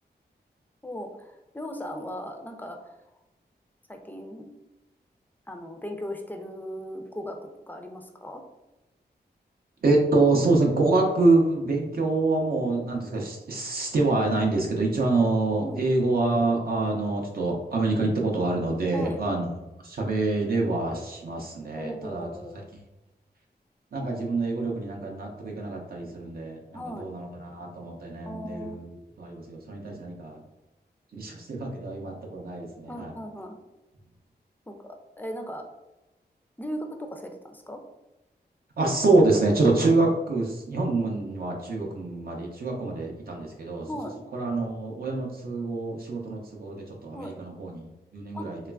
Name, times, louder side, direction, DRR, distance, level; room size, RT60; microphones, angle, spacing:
voice 1, 0.8-2.9 3.9-4.5 5.5-8.4 15.6-15.8 18.9-19.2 21.8-22.6 26.7-27.1 28.3-28.8 32.9-33.6 34.7-35.6 36.6-37.8 39.8-39.9 43.9-44.2 47.1-47.3 48.3-48.5, equal, 10° left, 4 dB, 0.3 m, -37 dB
voice 2, 9.8-19.5 19.8-22.3 22.5-22.6 23.9-30.4 31.1-33.2 38.8-43.9 44.3-48.6, right 2 dB, 60° right, -1 dB, 0.5 m, -26 dB
3.1 x 2.3 x 2.2 m, 1.0 s
wide cardioid pair, 105°, 18 cm